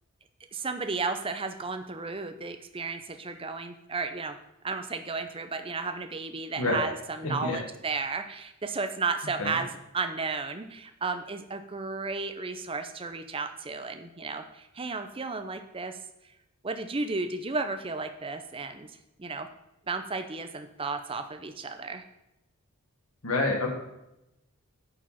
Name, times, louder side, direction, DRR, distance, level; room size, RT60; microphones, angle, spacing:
voice 1, 0.5-4.4 4.6-16.0 16.6-19.5 19.9-22.0, right 4 dB, 25° right, 8 dB, 0.6 m, -33 dB
voice 2, 7.2-7.6 9.4-9.6 23.2-23.7, left 2 dB, 70° left, 1 dB, 1.6 m, -27 dB
9.0 x 4.9 x 5.7 m, 0.89 s
head